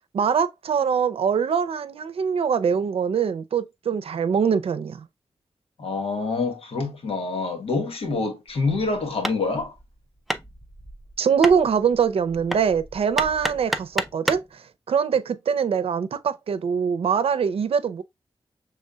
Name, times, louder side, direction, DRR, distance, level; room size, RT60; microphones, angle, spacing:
voice 1, 0.1-5.0 11.2-18.0, right 6 dB, 85° right, 0.6 m, -23 dB
voice 2, 5.8-9.7, left 3 dB, 85° left, 1.4 m, -26 dB
Hammer, 8.5-14.5, equal, ahead, 0.5 m, -32 dB
6.6 x 3.4 x 2.2 m
wide cardioid pair, 110°, 10 cm